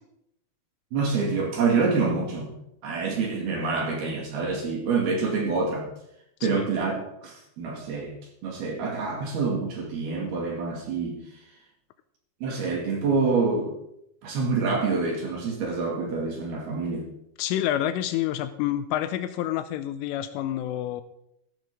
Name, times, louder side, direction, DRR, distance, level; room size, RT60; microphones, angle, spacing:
voice 1, 0.9-2.5 2.8-5.9 6.4-8.1 8.4-11.2 12.4-13.7 14.2-17.1, right 4 dB, 55° right, 0 dB, 3.8 m, -26 dB
voice 2, 17.4-21.0, left 12 dB, 85° left, 11 dB, 3.1 m, -28 dB
14.0 x 13.0 x 3.8 m, 0.77 s
omnidirectional pair, 5.9 m